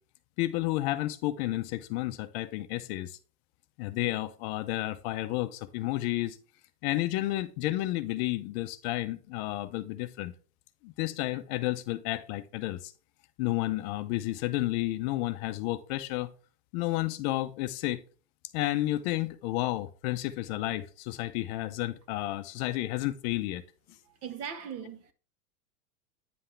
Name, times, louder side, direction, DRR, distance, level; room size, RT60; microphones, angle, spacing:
voice 1, 0.4-3.2 3.8-6.4 6.8-10.3 10.8-12.9 13.4-16.3 16.7-18.0 18.5-23.6, left 16 dB, 45° left, 0.7 m, -31 dB
voice 2, 24.0-25.1, right 7 dB, 30° right, 1.0 m, -39 dB
9.4 x 5.6 x 3.2 m
supercardioid pair, 135°, 46 cm